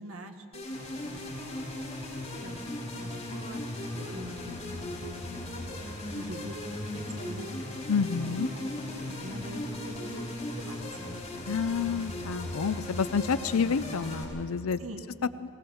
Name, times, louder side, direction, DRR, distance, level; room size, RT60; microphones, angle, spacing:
voice 1, 0.0-1.8 2.3-5.9 6.1-7.6 8.2-8.4 8.8-10.8 14.8-15.1, right 1 dB, 70° right, 5 dB, 1.4 m, -45 dB
sound 1, 0.5-14.2, left 1 dB, 25° left, 5.3 m, -37 dB
voice 2, 7.9-8.5 11.4-14.8, left 6 dB, 75° left, 14 dB, 0.5 m, -29 dB
19.5 x 18.5 x 7.2 m, 2.7 s
head